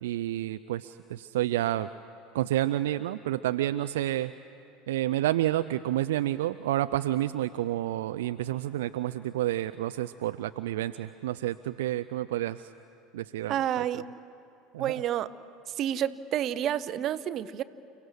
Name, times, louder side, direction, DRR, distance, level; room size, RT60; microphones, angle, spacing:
voice 1, 0.0-1.9 2.3-4.3 4.9-12.7 13.1-14.0 14.7-15.0, right 14 dB, 70° right, 10 dB, 0.4 m, -29 dB
voice 2, 13.5-14.0 14.8-15.3 15.7-17.6, right 11 dB, 45° right, 14 dB, 0.8 m, -29 dB
30.0 x 17.0 x 6.4 m, 2.7 s
hypercardioid pair, 75°, 0 cm